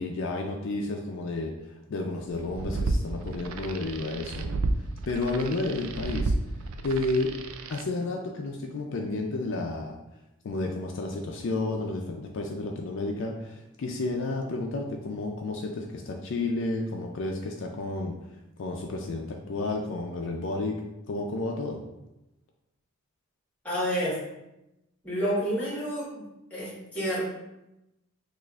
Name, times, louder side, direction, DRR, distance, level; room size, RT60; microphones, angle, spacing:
voice 1, 0.0-4.5 4.8-6.6 6.8-7.3 7.7-10.0 10.4-20.8 21.1-21.8, left 2 dB, 55° left, 2 dB, 0.4 m, -31 dB
sound 1, 2.3-7.8, right 2 dB, 70° right, 0.3 m, -32 dB
voice 2, 23.6-24.2 25.0-26.2 26.5-27.2, equal, 5° left, -7 dB, 1.2 m, -29 dB
6.3 x 2.4 x 2.3 m, 0.92 s
head